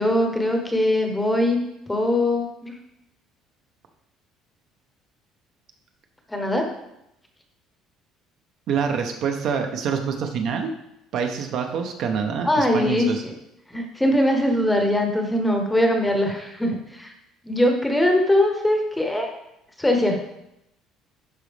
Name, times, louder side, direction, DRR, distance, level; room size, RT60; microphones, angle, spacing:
voice 1, 0.0-1.6 1.9-2.7 6.3-6.7 12.4-13.3 13.7-17.1 17.4-19.3 19.8-20.2, left 1 dB, 5° left, 3 dB, 0.9 m, -21 dB
voice 2, 8.7-10.7 11.1-13.2, right 6 dB, 50° right, 4 dB, 0.8 m, -26 dB
11.0 x 4.0 x 3.4 m, 0.82 s
cardioid pair, 160°, 0 cm